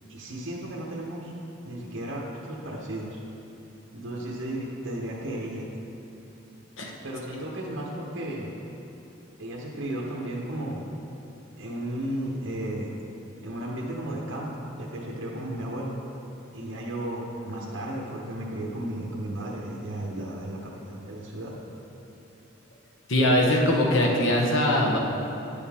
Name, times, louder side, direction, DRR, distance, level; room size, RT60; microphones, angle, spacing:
voice 1, 0.1-1.3 1.6-3.2 3.9-5.7 7.0-8.5 9.4-10.8 11.6-13.0 13.4-15.9 16.5-21.5, right 1 dB, 70° right, -3 dB, 1.0 m, -34 dB
voice 2, 23.1-25.0, left 1 dB, 70° left, -1 dB, 1.0 m, -21 dB
10.0 x 6.9 x 3.6 m, 2.9 s
head